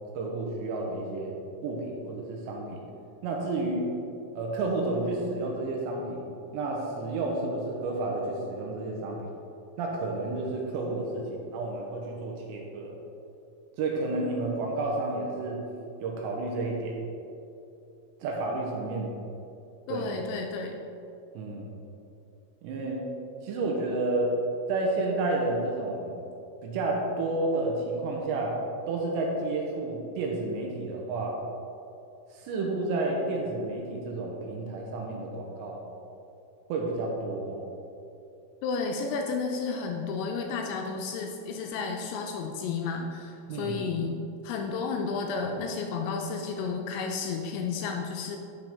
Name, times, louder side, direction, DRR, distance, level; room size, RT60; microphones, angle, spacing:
voice 1, 0.1-1.4 1.6-2.8 3.2-3.9 4.4-6.2 6.5-9.3 9.8-13.0 13.8-15.6 16.0-17.1 18.2-19.2 19.9-20.1 21.3-21.8 22.6-23.0 23.4-24.3 24.7-26.2 26.6-28.6 28.9-31.4 32.3-35.8 36.7-37.6 43.5-43.8, right 2 dB, 75° right, -1 dB, 2.9 m, -31 dB
voice 2, 19.9-20.8 38.6-44.1 44.4-48.4, left 4 dB, 80° left, 2 dB, 2.7 m, -32 dB
11.5 x 5.9 x 3.6 m, 2.7 s
omnidirectional pair, 5.5 m